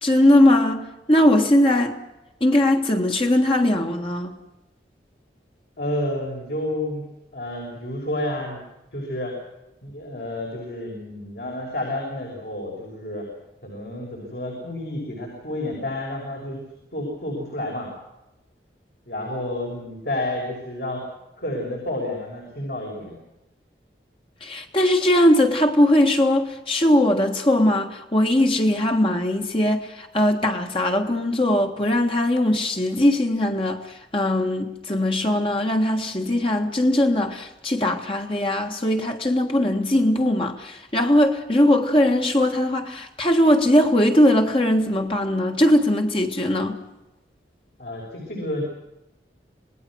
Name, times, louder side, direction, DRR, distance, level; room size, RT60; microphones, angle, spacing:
voice 1, 0.0-2.0 2.4-4.4 24.4-33.8 34.1-46.8, left 1 dB, 30° left, 1.6 m, -20 dB
voice 2, 5.8-7.0 7.3-8.6 8.9-9.4 9.8-13.3 13.6-16.6 16.9-17.9 19.1-21.0 21.4-23.2 47.8-48.6, left 1 dB, 65° left, 6.1 m, -30 dB
27.5 x 19.5 x 6.3 m
head